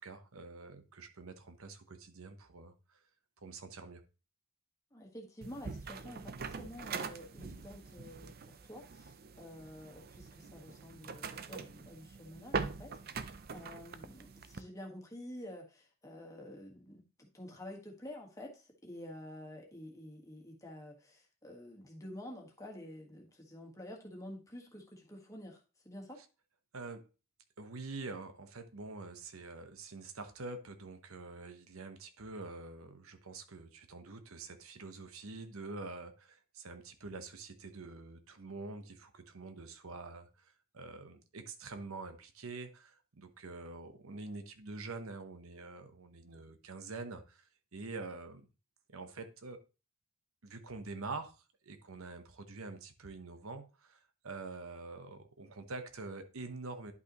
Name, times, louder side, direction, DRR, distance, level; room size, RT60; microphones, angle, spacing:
voice 1, 0.0-3.0 3.4-4.0 26.7-27.1 27.6-48.5 48.9-49.6 50.4-56.9, right 3 dB, 75° right, 8 dB, 1.0 m, -46 dB
voice 2, 4.9-26.2, left 1 dB, 15° left, 0 dB, 1.5 m, -49 dB
sound 1, 5.4-14.6, right 5 dB, 45° right, 0.5 m, -43 dB
11.0 x 5.6 x 3.0 m, 0.31 s
head